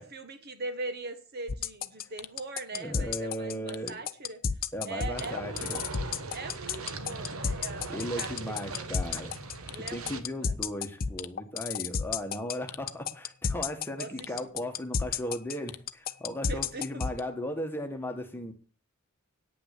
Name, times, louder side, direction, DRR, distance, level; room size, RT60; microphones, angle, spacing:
voice 1, 0.0-4.4 4.8-5.7 6.3-9.1 9.7-10.5 14.0-14.3 16.4-16.9, right 3 dB, 45° right, 8 dB, 1.3 m, -41 dB
sound 1, 1.5-17.2, left 6 dB, 40° left, 0.6 m, -30 dB
voice 2, 2.7-4.0 4.7-5.8 7.9-9.3 9.7-18.5, equal, 10° left, 4 dB, 1.5 m, -36 dB
sound 2, 5.1-10.2, right 3 dB, 65° right, 1.2 m, -39 dB
9.2 x 5.9 x 8.4 m, 0.37 s
head